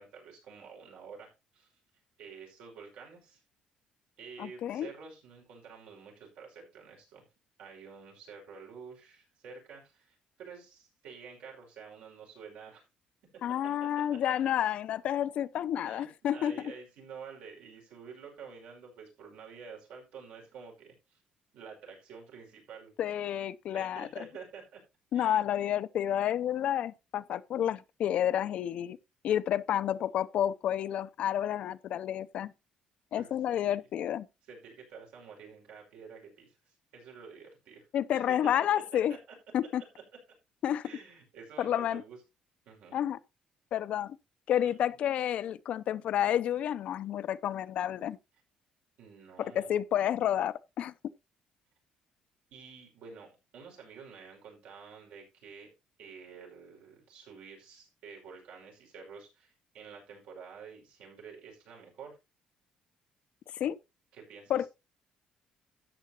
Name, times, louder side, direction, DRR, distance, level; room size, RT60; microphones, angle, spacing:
voice 1, 0.0-1.7 2.2-3.4 4.2-7.2 7.6-12.8 13.6-13.9 15.8-21.2 21.5-22.9 23.7-24.8 25.1-25.4 33.1-33.3 33.6-33.8 34.5-37.9 38.3-39.4 40.8-42.2 42.7-43.0 44.6-44.7 49.0-49.8 52.5-55.7 56.0-62.2 64.1-64.7, right 5 dB, 80° right, 5.4 m, -49 dB
voice 2, 4.4-4.9 13.4-16.5 23.0-24.1 25.1-29.0 29.2-32.5 33.1-34.3 37.9-39.2 39.5-39.8 40.6-40.9 41.6-42.0 42.9-43.2 43.7-44.2 44.5-48.2 49.4-50.9 63.6-63.8 64.5-64.7, left 10 dB, 60° left, 0.6 m, -30 dB
13.0 x 8.7 x 2.9 m
cardioid pair, 140°, 2 cm